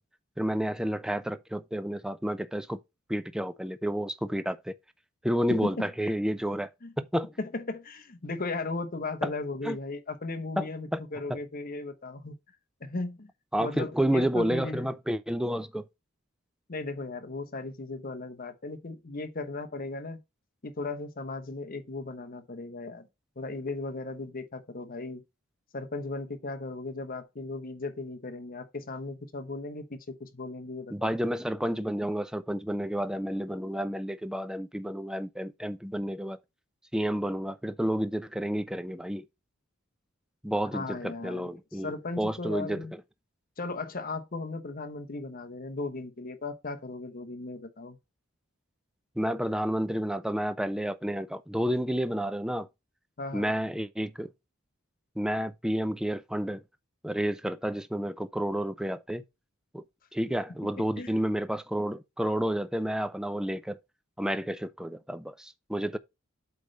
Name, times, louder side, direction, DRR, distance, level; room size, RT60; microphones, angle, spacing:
voice 1, 0.4-2.8 3.1-4.7 5.2-6.7 7.0-7.3 9.2-9.3 9.6-9.8 10.6-11.0 11.3-11.4 13.5-15.8 30.9-36.4 36.9-39.3 40.4-42.9 49.2-52.7 53.3-54.3 55.2-56.6 57.0-59.2 59.7-59.8 60.1-63.8 64.2-66.0, equal, 5° right, 0.4 m, -30 dB
voice 2, 5.5-6.1 6.8-6.9 7.4-12.3 12.8-13.3 13.6-14.9 16.7-20.2 20.6-23.1 23.4-25.2 25.7-31.1 40.7-42.9 43.6-48.0 53.2-53.5 60.8-61.1, left 3 dB, 45° left, 0.9 m, -36 dB
8.2 x 3.3 x 5.1 m
head